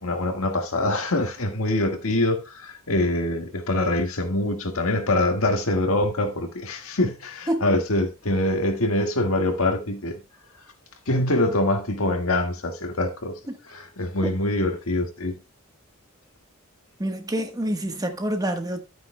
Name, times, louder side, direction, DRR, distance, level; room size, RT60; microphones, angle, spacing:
voice 1, 0.0-10.2 11.1-13.4 13.7-15.4, left 1 dB, 70° left, 1.7 m, -24 dB
voice 2, 17.0-18.8, right 1 dB, 15° right, 1.2 m, -27 dB
12.0 x 9.2 x 2.2 m
head